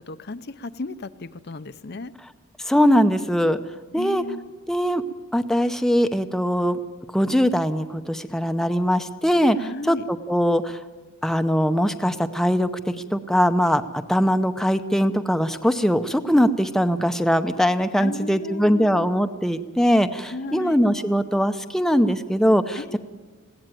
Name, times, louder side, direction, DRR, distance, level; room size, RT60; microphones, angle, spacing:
voice 1, 0.1-2.1 3.9-4.5 9.6-10.0 18.0-19.1 20.3-20.8 22.8-23.0, left 3 dB, 50° left, 12 dB, 0.7 m, -35 dB
voice 2, 2.7-3.6 3.9-4.2 4.7-5.0 5.3-6.8 7.1-10.8 11.2-13.8 14.1-23.0, equal, ahead, 8 dB, 0.7 m, -21 dB
21.0 x 16.0 x 9.1 m, 1.3 s
head